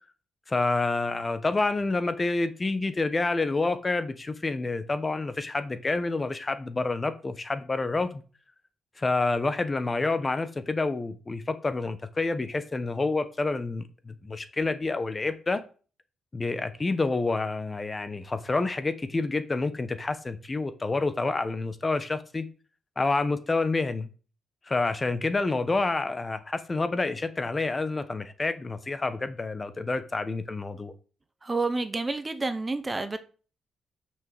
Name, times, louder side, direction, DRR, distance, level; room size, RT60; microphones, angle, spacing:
voice 1, 0.5-8.2 9.0-15.6 16.3-22.5 23.0-24.1 24.7-30.9, left 3 dB, 20° left, 0.9 m, -28 dB
voice 2, 31.4-33.2, right 3 dB, 20° right, 0.8 m, -29 dB
6.3 x 6.1 x 7.1 m
cardioid pair, 150°, 0 cm